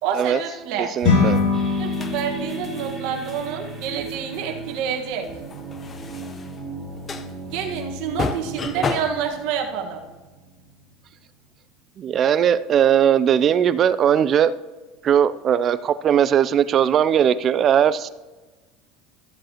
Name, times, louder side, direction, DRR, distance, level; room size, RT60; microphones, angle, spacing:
voice 1, 0.0-0.9 1.8-5.2 7.5-10.0, right 7 dB, 65° right, 3 dB, 1.5 m, -28 dB
voice 2, 0.8-1.4 12.0-14.5 15.0-18.1, right 9 dB, 40° right, 16 dB, 0.4 m, -19 dB
sound 1, 1.0-10.5, left 4 dB, 60° left, 2.6 m, -28 dB
sound 2, 1.2-9.4, left 4 dB, 25° left, 0.7 m, -33 dB
sound 3, 1.5-10.9, right 3 dB, 5° right, 2.8 m, -37 dB
13.5 x 7.6 x 3.0 m, 1.2 s
supercardioid pair, 120°, 0 cm